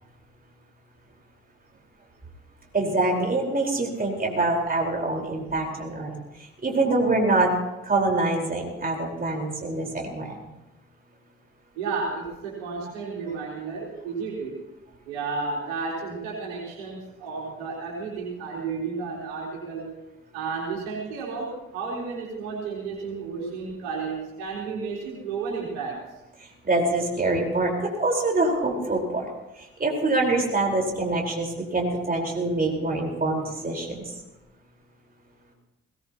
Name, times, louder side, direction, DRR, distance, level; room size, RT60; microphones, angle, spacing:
voice 1, 2.7-6.1 6.6-7.5 7.9-10.3 26.6-27.7 28.0-29.2 29.8-34.0, right 2 dB, 30° right, 0 dB, 4.4 m, -25 dB
voice 2, 11.8-14.6 15.1-19.9 20.3-26.0, right 4 dB, 80° right, -5 dB, 3.8 m, -32 dB
20.5 x 18.5 x 2.9 m, 1.0 s
hypercardioid pair, 45°, 31 cm